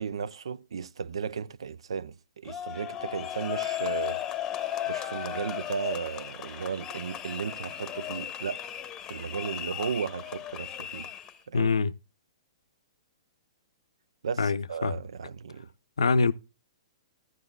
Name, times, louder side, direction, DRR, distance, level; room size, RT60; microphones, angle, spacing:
voice 1, 0.0-4.2 4.9-8.7 9.1-11.1 11.5-11.7 14.2-15.7, right 6 dB, 70° right, 0.4 m, -35 dB
sound 1, 2.5-11.4, left 11 dB, 20° left, 0.9 m, -36 dB
voice 2, 11.5-11.9 14.4-14.9 16.0-16.3, left 4 dB, 75° left, 0.5 m, -24 dB
14.5 x 10.5 x 2.2 m
figure-of-eight pair, 120°, 3 cm